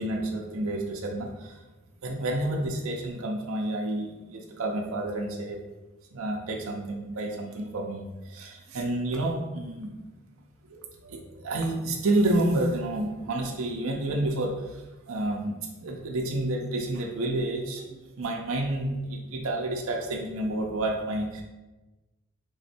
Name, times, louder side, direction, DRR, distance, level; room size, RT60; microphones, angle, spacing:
voice 1, 0.0-1.6 2.0-5.6 6.1-9.9 10.6-21.4, right 1 dB, 75° right, 0 dB, 0.6 m, -30 dB
3.5 x 3.1 x 4.3 m, 1.1 s
head